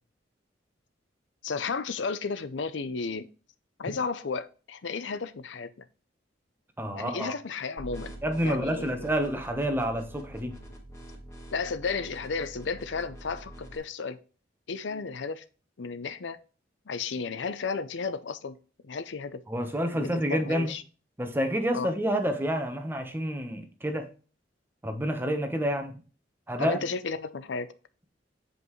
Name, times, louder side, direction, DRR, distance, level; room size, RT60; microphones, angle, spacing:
voice 1, 1.4-3.3 3.8-5.9 6.9-8.1 8.4-9.1 11.5-14.2 14.7-15.4 15.8-16.4 16.9-18.6 18.8-19.4 19.9-20.8 21.7-21.9 26.6-27.7, left 5 dB, 75° left, 0.6 m, -33 dB
voice 2, 6.8-7.3 8.2-10.5 19.5-20.7 21.2-24.1 24.8-25.9 26.5-26.8, equal, 10° right, 1.1 m, -28 dB
sound 1, 7.8-13.8, right 1 dB, 15° left, 1.7 m, -45 dB
7.9 x 5.2 x 3.1 m
head